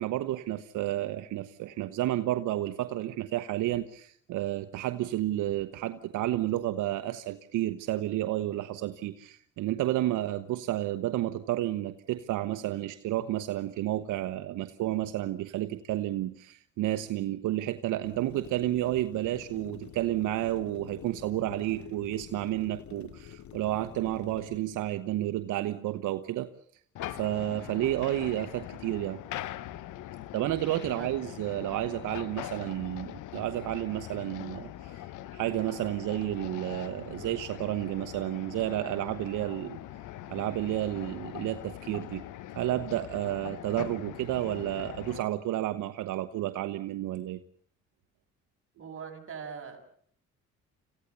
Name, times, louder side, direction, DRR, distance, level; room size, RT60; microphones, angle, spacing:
voice 1, 0.0-26.5 27.1-29.2 30.3-35.0 35.3-39.8 40.3-42.2 42.5-47.4, right 14 dB, 85° right, 9 dB, 1.1 m, -31 dB
sound 1, 18.0-24.6, left 10 dB, 70° left, 1.3 m, -48 dB
sound 2, 27.0-45.2, left 13 dB, 85° left, 1.1 m, -42 dB
voice 2, 48.8-49.8, right 6 dB, 45° right, 2 dB, 7.0 m, -41 dB
27.0 x 15.5 x 8.2 m, 0.63 s
cardioid pair, 90°, 30 cm